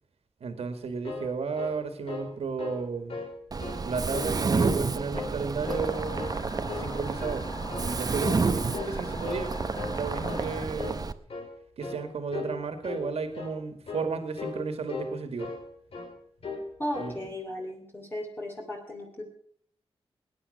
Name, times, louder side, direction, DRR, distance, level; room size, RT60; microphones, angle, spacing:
voice 1, 0.4-3.2 3.8-6.4 6.8-7.5 7.7-9.5 9.9-11.1 11.8-15.5 17.0-17.2, right 5 dB, 80° right, 8 dB, 2.1 m, -33 dB
sound 1, 0.8-2.3 2.6-2.8 3.1-3.8 4.1-4.9 5.1-5.9 6.2-6.4 6.7-7.4 7.7-7.9 8.2-8.5 8.7-9.5 9.7-10.0 10.3-10.5 10.8-11.0 11.3-11.5 11.8-12.0 12.3-12.6 12.8-13.1 13.3-13.6 13.9-14.1 14.4-14.6 14.9-15.7 15.9-16.1 16.4-16.7 16.9-17.2, left 4 dB, 65° left, 3.7 m, -37 dB
Mechanisms, 3.5-11.1, right 4 dB, 40° right, 0.7 m, -30 dB
sound 2, 5.6-10.6, left 3 dB, 40° left, 1.5 m, -43 dB
voice 2, 16.8-19.2, left 1 dB, 20° left, 0 dB, 2.8 m, -36 dB
19.5 x 9.8 x 5.5 m, 0.62 s
wide cardioid pair, 110°, 10 cm